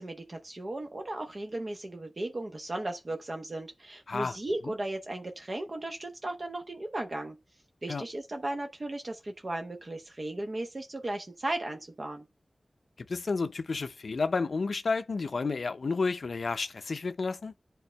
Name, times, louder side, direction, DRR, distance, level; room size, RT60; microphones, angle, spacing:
voice 1, 0.0-7.4 7.8-12.2, right 1 dB, 50° right, 0.9 m, -36 dB
voice 2, 13.1-17.5, left 4 dB, 80° left, 0.5 m, -31 dB
11.0 x 3.7 x 3.2 m
wide cardioid pair, 55°, 0 cm